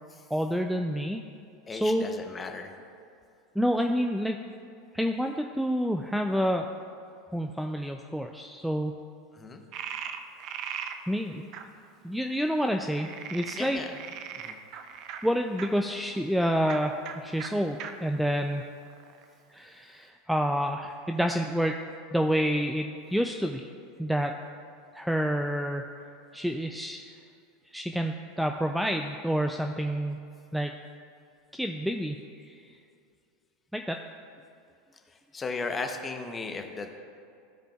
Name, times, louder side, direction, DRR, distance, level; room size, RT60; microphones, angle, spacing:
voice 1, 0.3-1.2 1.7-2.0 3.6-4.4 4.9-6.7 7.3-9.0 11.1-11.4 12.0-13.8 15.2-18.6 19.5-21.8 22.1-23.7 24.0-24.3 24.9-25.8 26.3-27.2 27.7-30.2 30.5-30.7 31.5-32.5 33.7-34.0, equal, ahead, 4 dB, 0.4 m, -28 dB
voice 2, 1.7-2.8 9.3-9.6 13.5-13.9 14.4-14.6 35.3-37.0, left 4 dB, 20° left, 5 dB, 0.8 m, -36 dB
Frog, 9.7-11.0 11.5-11.6 12.9-15.7 16.6-16.8 17.0-17.1 17.4-17.5 17.8-17.9 18.5-19.2, right 8 dB, 50° right, 0.5 m, -38 dB
14.5 x 5.0 x 2.4 m, 2.4 s
hypercardioid pair, 85°, 0 cm